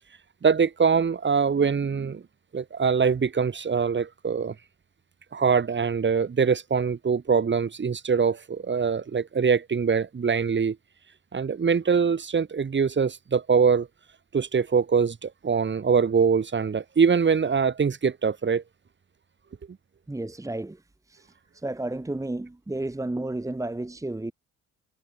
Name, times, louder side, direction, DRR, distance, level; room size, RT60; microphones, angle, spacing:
voice 1, 0.4-2.2 2.5-4.5 5.3-10.8 11.3-13.9 14.3-18.6, right 6 dB, 40° right, 3.3 m, -23 dB
voice 2, 20.1-20.8 21.1-21.3 21.5-24.3, right 2 dB, 10° right, 1.8 m, -32 dB
cardioid pair, 90°, 30 cm